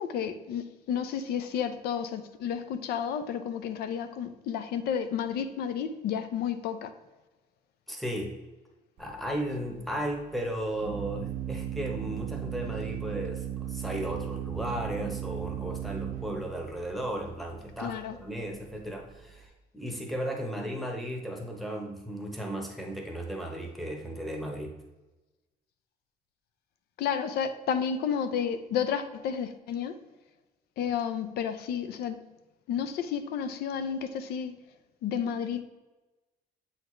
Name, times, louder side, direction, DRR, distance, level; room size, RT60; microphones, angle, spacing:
voice 1, 0.0-6.9 17.8-18.2 27.0-30.0 30.8-32.2 32.7-34.5 35.0-35.6, left 8 dB, 85° left, 0.5 m, -31 dB
voice 2, 7.9-8.3 9.0-24.8, right 1 dB, ahead, 0.9 m, -35 dB
Organ, 9.0-19.5, right 10 dB, 60° right, 0.5 m, -37 dB
7.7 x 4.0 x 3.1 m
cardioid pair, 170°, 16 cm